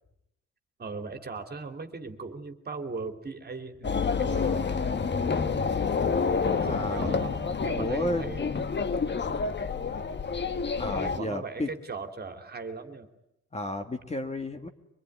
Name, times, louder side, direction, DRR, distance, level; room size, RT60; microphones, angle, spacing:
voice 1, 0.8-4.6 6.6-8.4 11.0-13.1, right 4 dB, 30° right, 7 dB, 2.8 m, -38 dB
sound 1, 3.8-11.2, left 5 dB, 35° left, 1.4 m, -28 dB
voice 2, 4.3-4.8 6.7-7.2 7.8-8.6 9.0-9.4 10.8-11.7 13.5-14.7, left 1 dB, 20° left, 6 dB, 2.0 m, -33 dB
24.5 x 21.0 x 9.8 m, 0.83 s
cardioid pair, 90°, 30 cm